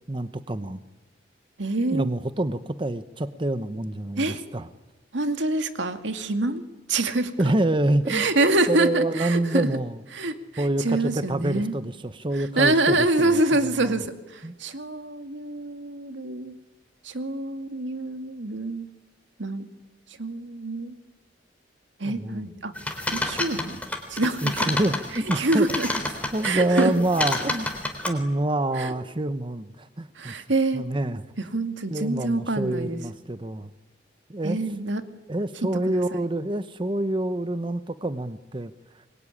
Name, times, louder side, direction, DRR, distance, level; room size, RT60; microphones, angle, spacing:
voice 1, 0.1-0.8 1.9-4.7 7.4-8.3 8.7-10.0 10.6-13.9 14.4-14.5 22.0-22.5 24.4-25.8 26.3-27.7 28.1-30.5 30.7-31.2 31.9-33.7 34.3-34.6 35.3-38.7, right 1 dB, 25° right, 11 dB, 0.9 m, -27 dB
voice 2, 1.6-2.1 4.2-4.4 5.1-6.6 6.9-7.3 8.1-9.7 10.1-11.7 12.3-16.5 17.0-18.9 19.4-19.7 20.2-20.9 22.0-22.7 23.1-23.8 24.1-24.7 25.4-25.9 26.4-26.9 28.7-28.9 30.2-30.8 31.4-33.0 34.4-35.0 35.6-36.2, right 2 dB, 80° right, 7 dB, 2.2 m, -26 dB
sound 1, 22.8-26.5 26.7-28.1, left 2 dB, 10° left, 3.7 m, -29 dB
25.5 x 22.5 x 9.9 m, 1.1 s
head